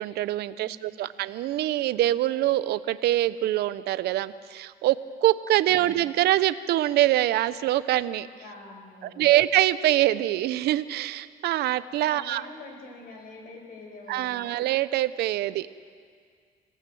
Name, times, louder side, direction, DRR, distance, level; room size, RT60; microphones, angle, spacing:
voice 1, 0.0-5.0 5.2-8.3 9.2-12.4 14.1-15.7, right 14 dB, 75° right, 15 dB, 0.7 m, -24 dB
voice 2, 0.5-1.1 5.7-5.9 8.4-9.4 12.1-14.6, left 2 dB, 60° left, 2 dB, 5.7 m, -45 dB
26.0 x 17.5 x 7.8 m, 2.1 s
cardioid pair, 110°, 17 cm